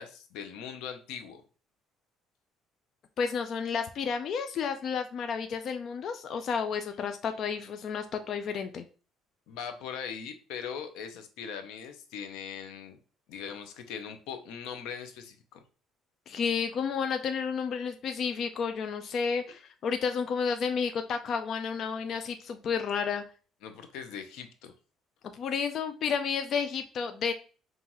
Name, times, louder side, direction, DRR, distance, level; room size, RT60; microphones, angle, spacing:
voice 1, 0.0-1.4 9.5-13.0 13.3-15.6 23.6-24.7, left 7 dB, 90° left, 8 dB, 0.7 m, -40 dB
voice 2, 3.2-8.8 16.3-23.2 25.3-27.3, left 6 dB, 50° left, 8 dB, 0.4 m, -31 dB
5.4 x 2.5 x 2.9 m, 0.38 s
cardioid pair, 140°, 0 cm